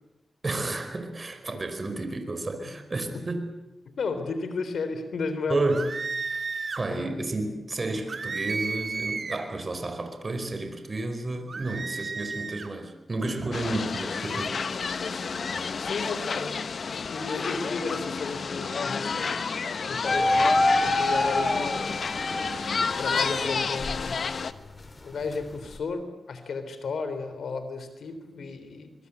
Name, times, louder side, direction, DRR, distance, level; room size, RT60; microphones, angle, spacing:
voice 1, 0.4-3.4 5.5-5.9 6.3-6.4 6.8-14.6, right 2 dB, 40° right, 7 dB, 5.0 m, -31 dB
voice 2, 3.9-5.9 6.9-7.2 13.8-16.6 16.9-19.5 19.9-24.4 25.0-28.9, left 4 dB, 85° left, 10 dB, 3.6 m, -34 dB
sound 1, 5.7-6.9 8.1-9.5 11.5-12.7, right 4 dB, 55° right, 3.2 m, -33 dB
sound 2, 13.5-24.5, left 5 dB, 65° left, 1.2 m, -30 dB
sound 3, 20.1-22.9 23.4-25.8, left 1 dB, 35° left, 3.8 m, -27 dB
25.5 x 22.5 x 8.2 m, 0.95 s
cardioid pair, 75°, 0 cm